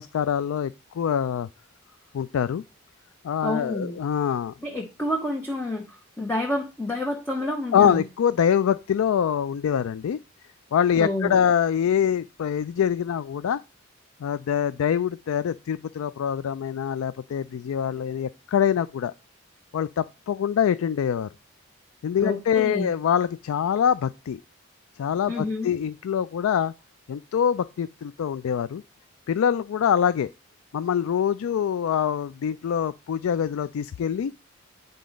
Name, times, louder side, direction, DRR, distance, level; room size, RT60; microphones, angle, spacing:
voice 1, 0.0-1.5 2.1-2.6 3.2-4.5 7.4-10.2 10.7-13.6 14.2-19.1 19.7-21.3 22.0-24.4 25.0-26.7 27.1-28.8 29.3-30.3 30.7-34.3, left 8 dB, 90° left, 0.3 m, -24 dB
voice 2, 3.4-4.0 4.6-8.0 11.0-11.4 22.2-22.9 25.3-25.7, left 1 dB, 10° left, 0.9 m, -29 dB
9.4 x 3.9 x 5.1 m
head